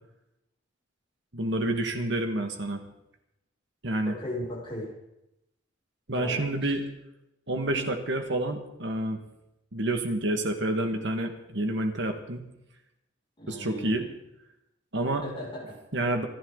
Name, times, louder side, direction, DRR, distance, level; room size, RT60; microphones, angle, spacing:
voice 1, 1.3-2.8 3.8-4.2 6.1-6.8 7.5-9.2 9.7-12.4 13.5-14.0 14.9-15.2 15.9-16.3, right 1 dB, 65° right, 5 dB, 2.0 m, -28 dB
voice 2, 4.0-4.9 6.1-6.7 7.7-7.9 13.4-14.1 15.2-15.8, left 1 dB, 30° left, -4 dB, 6.7 m, -37 dB
26.5 x 11.5 x 4.1 m, 0.87 s
head